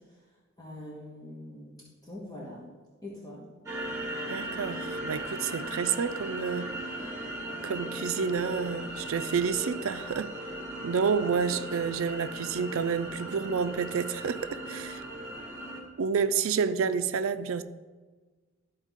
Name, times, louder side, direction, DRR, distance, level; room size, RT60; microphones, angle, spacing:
voice 1, 0.6-2.7 3.0-3.5, left 1 dB, 20° left, 1.5 m, -43 dB
sound 1, 3.7-15.8, right 1 dB, 15° right, 1.8 m, -38 dB
voice 2, 4.3-6.7 7.6-10.3 10.8-15.0 16.0-17.6, right 6 dB, 85° right, 0.4 m, -29 dB
13.0 x 4.4 x 3.6 m
head